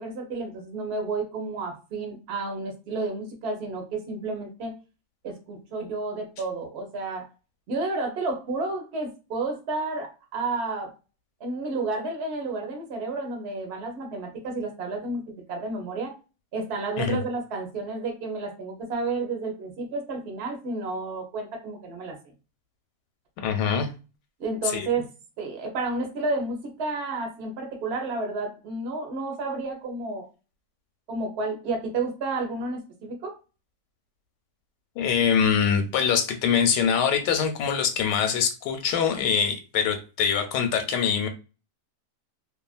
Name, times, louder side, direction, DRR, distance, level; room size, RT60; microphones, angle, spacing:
voice 1, 0.0-4.7 5.2-7.3 7.7-10.9 11.4-16.1 16.5-22.2 24.4-25.0 25.4-30.3 31.1-33.3, right 3 dB, 50° right, 2 dB, 0.8 m, -31 dB
voice 2, 23.4-23.9 24.7-24.9 35.0-41.3, left 7 dB, 85° left, 6 dB, 1.2 m, -24 dB
2.8 x 2.4 x 2.4 m, 0.31 s
omnidirectional pair, 1.8 m